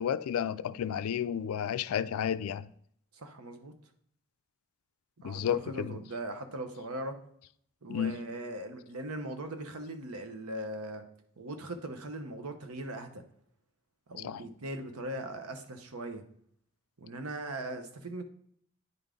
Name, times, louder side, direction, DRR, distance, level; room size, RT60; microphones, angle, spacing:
voice 1, 0.0-2.7 5.2-6.0 7.9-8.2 14.2-14.4, left 8 dB, 80° left, 0.3 m, -32 dB
voice 2, 3.1-3.7 5.2-7.2 7.8-11.0 11.4-13.2 14.1-16.2 17.0-18.2, right 1 dB, 85° right, 0.9 m, -39 dB
9.4 x 3.5 x 3.7 m
head